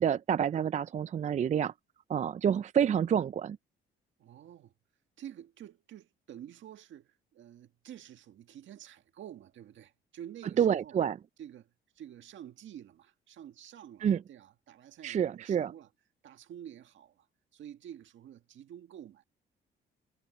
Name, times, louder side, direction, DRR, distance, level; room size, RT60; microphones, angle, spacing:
voice 1, 0.0-1.7 2.1-3.6 10.6-11.2 14.0-14.2 15.0-15.7, right 8 dB, 35° right, 0.4 m, -28 dB
voice 2, 4.2-4.7 5.2-11.0 11.4-11.7 12.0-15.9 16.2-17.3 17.5-19.2, right 10 dB, 70° right, 1.8 m, -49 dB
cardioid pair, 90°, 20 cm